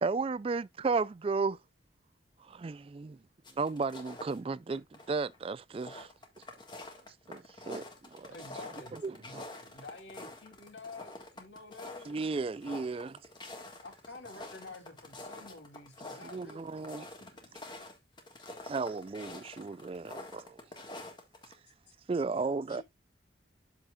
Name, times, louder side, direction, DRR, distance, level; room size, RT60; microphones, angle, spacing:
voice 1, 0.0-1.6 2.4-3.2 3.6-6.1 7.3-7.8 8.1-8.3 8.9-9.4 12.1-13.2 16.2-17.1 18.6-20.6 22.1-22.8, right 4 dB, 30° right, 0.3 m, -34 dB
sound 1, 3.4-4.4 4.7-5.4 5.6-21.5, left 2 dB, 25° left, 1.6 m, -46 dB
voice 2, 8.3-12.2 13.8-16.9, left 3 dB, 75° left, 2.9 m, -49 dB
voice 3, 17.2-18.0 18.3-18.7 22.7-22.8, left 2 dB, 50° left, 2.0 m, -58 dB
13.0 x 4.3 x 2.4 m
head